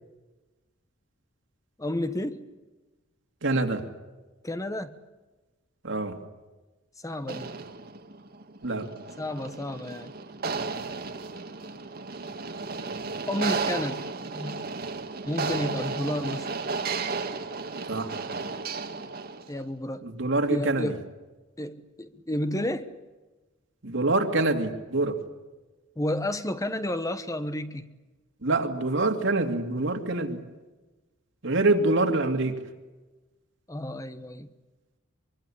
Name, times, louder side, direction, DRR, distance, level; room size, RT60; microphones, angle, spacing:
voice 1, 1.8-2.4 4.4-5.0 7.0-7.5 9.2-10.1 13.3-14.0 14.3-14.6 15.2-16.5 19.5-20.0 20.5-21.0 21.6-22.9 26.0-27.9 33.7-34.5, left 1 dB, 15° left, 11 dB, 1.1 m, -31 dB
voice 2, 3.4-3.9 5.8-6.2 8.6-8.9 17.9-18.1 20.0-21.0 23.8-25.2 28.4-30.4 31.4-32.6, right 2 dB, 65° right, 5 dB, 2.6 m, -25 dB
sound 1, 7.2-19.6, right 4 dB, 50° right, 1.8 m, -34 dB
24.0 x 24.0 x 8.7 m, 1.2 s
head